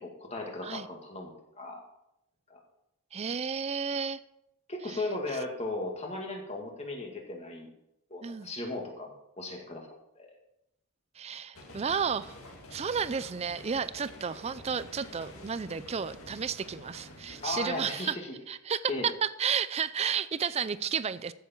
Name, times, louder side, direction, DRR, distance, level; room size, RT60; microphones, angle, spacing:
voice 1, 0.0-1.8 2.5-2.6 4.7-7.7 8.1-9.1 9.4-9.9 10.2-10.3 17.4-18.3 18.9-19.1, left 2 dB, 30° left, 1 dB, 2.2 m, -36 dB
voice 2, 3.1-4.2 4.9-5.0 8.2-8.5 11.2-12.4 12.7-18.2 18.5-21.3, right 6 dB, 30° right, 16 dB, 0.4 m, -32 dB
sound 1, 11.5-17.7, left 1 dB, 75° left, 2.1 m, -49 dB
15.0 x 7.1 x 4.5 m, 0.83 s
head